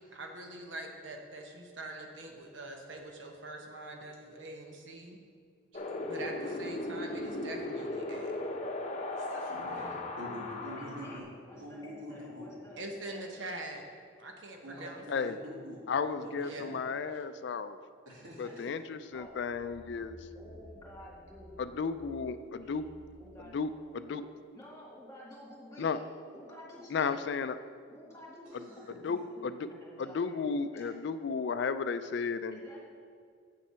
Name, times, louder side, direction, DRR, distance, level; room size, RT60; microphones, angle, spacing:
voice 1, 0.0-5.2 6.1-8.4 12.8-13.8 14.2-15.4 16.4-16.8, right 2 dB, 65° right, 2 dB, 0.9 m, -44 dB
Wind, 5.7-11.2, left 2 dB, 35° left, 0.8 m, -37 dB
voice 2, 9.1-11.2 11.6-12.5 14.6-16.7 18.1-18.7 28.5-28.8, equal, 85° right, -4 dB, 2.5 m, -45 dB
voice 3, 10.6-13.4 14.7-14.9 18.4-18.7 19.1-19.3 20.3-21.8 22.6-22.8 23.2-23.6 24.1-24.2 24.5-25.9 26.3-27.1 27.9-30.4 30.7-30.9 32.5-32.8, left 1 dB, 15° left, -4 dB, 2.3 m, -51 dB
voice 4, 15.9-17.8 18.4-20.2 21.6-22.9 23.5-24.2 25.8-26.0 26.9-27.6 29.0-29.7 30.0-32.6, left 5 dB, 60° left, 11 dB, 0.4 m, -34 dB
sound 1, 19.2-23.5 24.0-24.1, left 1 dB, 5° right, 1.4 m, -55 dB
7.7 x 7.4 x 5.6 m, 2.1 s
head